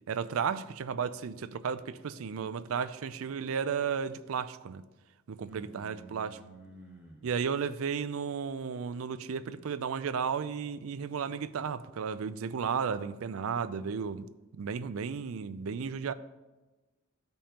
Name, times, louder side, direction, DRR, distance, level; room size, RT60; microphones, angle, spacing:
voice 1, 0.1-4.8 5.3-6.4 7.2-14.3 14.6-16.1, right 6 dB, 70° right, 14 dB, 0.4 m, -34 dB
voice 2, 5.5-7.3, right 2 dB, 5° right, -3 dB, 0.9 m, -51 dB
14.0 x 5.2 x 2.9 m, 1.1 s
head